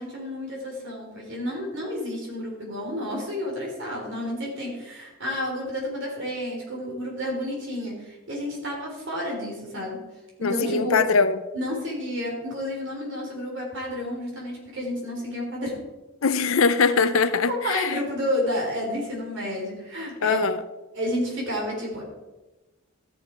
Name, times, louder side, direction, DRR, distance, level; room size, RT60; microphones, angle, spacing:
voice 1, 0.0-10.0 10.4-11.0 11.5-15.7 17.5-20.4 20.9-22.0, left 1 dB, 55° right, -2 dB, 3.7 m, -30 dB
voice 2, 10.4-11.4 16.2-18.0 20.2-20.6, left 5 dB, 65° left, 12 dB, 0.6 m, -22 dB
13.5 x 7.1 x 4.5 m, 1.1 s
head